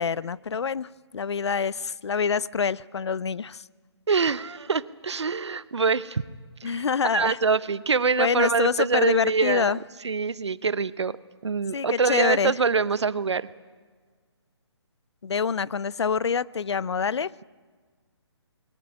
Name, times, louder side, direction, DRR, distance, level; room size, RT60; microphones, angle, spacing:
voice 1, 0.0-3.6 6.6-7.4 8.2-9.8 11.7-12.5 15.2-17.3, left 6 dB, 70° left, 21 dB, 0.6 m, -26 dB
voice 2, 4.1-6.2 6.6-6.8 7.1-9.8 10.0-11.2 11.4-13.5, right 5 dB, 75° right, 17 dB, 0.9 m, -24 dB
21.5 x 18.0 x 9.9 m, 1.5 s
figure-of-eight pair, 150°, 15 cm